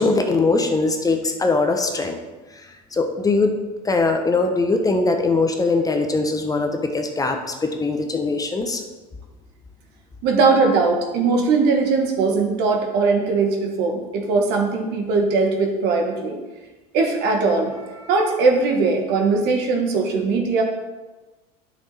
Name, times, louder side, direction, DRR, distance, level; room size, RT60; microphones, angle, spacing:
voice 1, 0.0-2.2 2.5-3.6 3.8-8.8, left 3 dB, 20° left, 4 dB, 1.1 m, -21 dB
voice 2, 10.2-16.4 16.9-20.6, right 4 dB, 60° right, 2 dB, 1.7 m, -20 dB
8.9 x 6.2 x 4.3 m, 1.2 s
hypercardioid pair, 85°, 19 cm